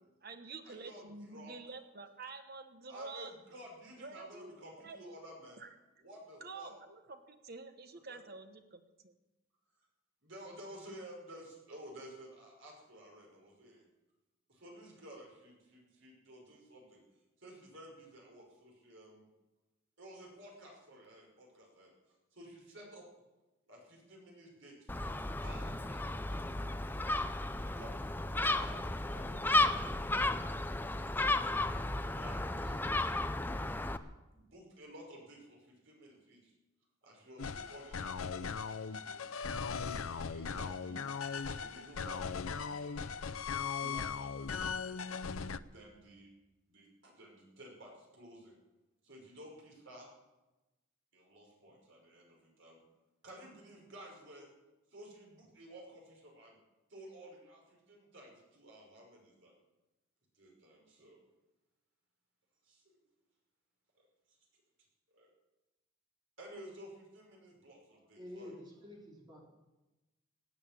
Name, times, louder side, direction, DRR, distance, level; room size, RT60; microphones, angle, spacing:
voice 1, 0.0-3.3 4.0-5.2 5.6-5.7 6.4-9.1, right 3 dB, 50° right, 8 dB, 1.3 m, -49 dB
voice 2, 0.6-1.6 2.9-5.6 6.0-6.7 8.1-8.2 10.2-13.8 14.5-17.0 17.4-19.3 20.0-21.9 22.3-23.0 23.7-27.2 27.5-30.7 31.1-33.5 34.3-36.5 37.0-39.2 39.9-41.1 41.4-45.0 45.7-46.3 46.7-48.5 49.0-50.1 51.1-52.8 53.2-54.5 54.9-56.6 56.9-59.5 60.3-61.3 62.6-63.0 64.0-64.4 65.2-65.3 66.4-68.5, right 1 dB, 65° right, -1 dB, 5.5 m, -54 dB
Gull seagull, 24.9-34.0, left 2 dB, 10° left, 0.5 m, -34 dB
sound 1, 37.4-45.6, left 5 dB, 85° left, 0.6 m, -38 dB
voice 3, 68.0-69.4, left 1 dB, 20° right, -2 dB, 4.1 m, -49 dB
17.5 x 9.0 x 8.9 m, 1.1 s
head